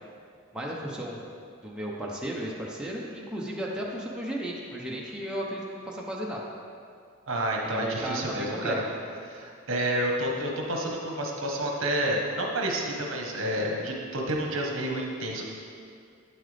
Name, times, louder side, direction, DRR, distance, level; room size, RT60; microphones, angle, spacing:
voice 1, 0.5-1.3 1.6-6.4 7.7-8.8, right 1 dB, 5° right, -4 dB, 0.7 m, -34 dB
voice 2, 7.3-8.7 9.3-15.4, right 1 dB, 65° right, 0 dB, 1.1 m, -29 dB
9.1 x 7.7 x 3.4 m, 2.3 s
head